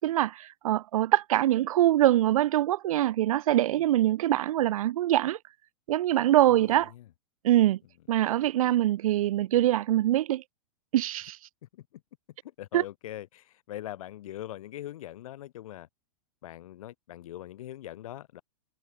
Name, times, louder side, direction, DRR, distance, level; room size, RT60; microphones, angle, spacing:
voice 1, 0.0-5.4 5.9-6.9 7.4-7.8 8.1-10.4 10.9-11.4 12.7-12.8, right 13 dB, 75° right, 1.0 m, -24 dB
voice 2, 6.5-7.0 11.7-11.9 12.6-15.9 16.4-18.4, left 13 dB, 70° left, 4.0 m, -42 dB
hypercardioid pair, 135°, 18 cm